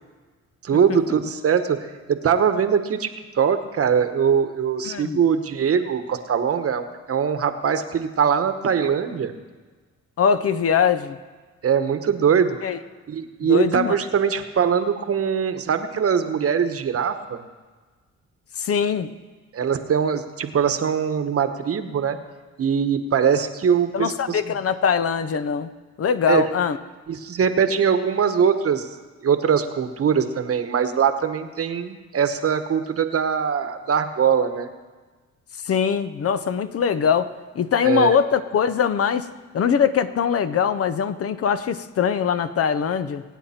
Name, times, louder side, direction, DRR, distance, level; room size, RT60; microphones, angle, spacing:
voice 1, 0.6-1.8 2.1-3.1 3.3-9.3 11.6-12.6 13.1-17.4 19.5-22.2 22.6-24.4 26.3-26.5 27.1-28.9 29.2-34.7 37.8-38.1, right 7 dB, 50° right, 9 dB, 1.2 m, -22 dB
voice 2, 4.8-5.2 10.2-11.2 12.6-12.8 13.4-13.9 18.6-19.1 23.9-25.7 26.0-26.8 35.6-39.3 39.5-43.2, left 7 dB, 50° left, 12 dB, 0.8 m, -22 dB
23.0 x 9.1 x 4.4 m, 1.4 s
cardioid pair, 90°, 30 cm